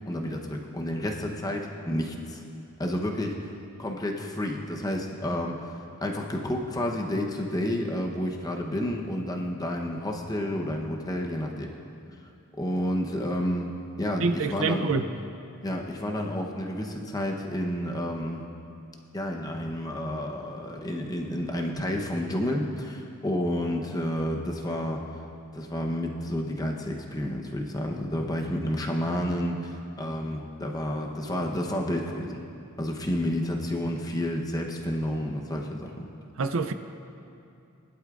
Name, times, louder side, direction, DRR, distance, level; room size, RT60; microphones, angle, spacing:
voice 1, 0.0-2.4 2.8-3.5 3.8-11.7 12.5-13.7 14.0-14.8 15.6-18.4 19.1-25.2 25.5-32.4 32.8-36.1, left 1 dB, 20° left, 1 dB, 0.9 m, -30 dB
voice 2, 14.2-15.1 36.4-36.7, right 4 dB, 65° right, 9 dB, 0.5 m, -26 dB
19.5 x 11.5 x 2.5 m, 2.6 s
head